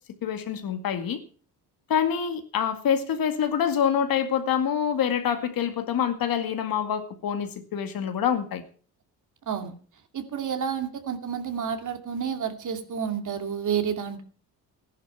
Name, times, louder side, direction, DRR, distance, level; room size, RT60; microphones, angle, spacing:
voice 1, 0.2-1.2 1.9-8.6, left 8 dB, 65° left, 2.2 m, -26 dB
voice 2, 10.1-14.2, right 7 dB, 50° right, 2.6 m, -30 dB
14.0 x 11.0 x 5.8 m
supercardioid pair, 80°, 38 cm